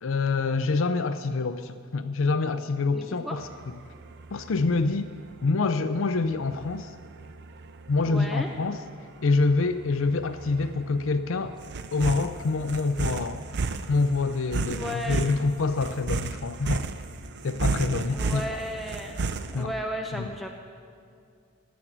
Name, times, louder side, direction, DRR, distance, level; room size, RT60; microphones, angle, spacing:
voice 1, 0.0-3.5 4.3-5.1 5.4-6.9 7.9-8.8 9.2-11.6 11.9-13.4 13.9-16.8 17.4-18.4 19.5-19.7 20.1-20.3, left 3 dB, 70° left, 10 dB, 0.5 m, -26 dB
voice 2, 2.9-3.4 8.0-8.5 14.7-15.3 18.1-19.2 19.5-20.5, equal, ahead, 1 dB, 0.8 m, -34 dB
sound 1, 3.4-19.6, right 3 dB, 55° right, 0.6 m, -34 dB
17.5 x 6.2 x 8.7 m, 2.4 s
head